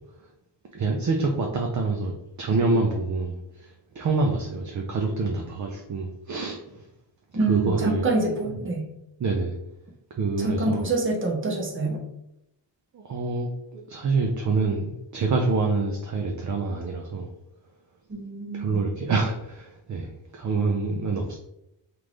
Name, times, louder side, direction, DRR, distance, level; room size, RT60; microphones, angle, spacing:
voice 1, 0.7-6.8 7.5-8.1 8.5-8.6 9.2-9.6 10.2-10.9 12.9-17.3 18.5-21.4, right 3 dB, 45° right, 1 dB, 0.5 m, -26 dB
voice 2, 7.3-8.9 10.4-12.0 18.1-18.7, right 2 dB, 25° right, 0 dB, 0.9 m, -26 dB
3.6 x 2.5 x 3.1 m, 0.84 s
wide cardioid pair, 105°, 45 cm